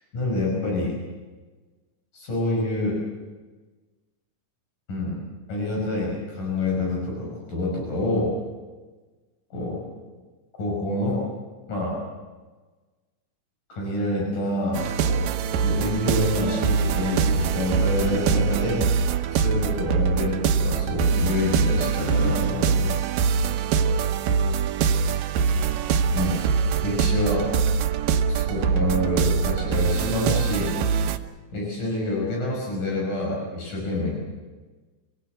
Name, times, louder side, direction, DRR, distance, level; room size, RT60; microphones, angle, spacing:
voice 1, 0.1-0.9 2.1-3.0 4.9-5.2 5.5-8.3 9.5-9.8 10.6-11.2 11.7-12.0 13.7-19.1 19.3-23.0 26.1-26.4 26.8-27.5 28.3-31.0 31.5-34.1, left 1 dB, 75° left, -2 dB, 7.3 m, -27 dB
sound 1, 14.7-31.2, right 6 dB, 85° right, 2.7 m, -23 dB
28.0 x 17.5 x 7.9 m, 1.3 s
omnidirectional pair, 3.7 m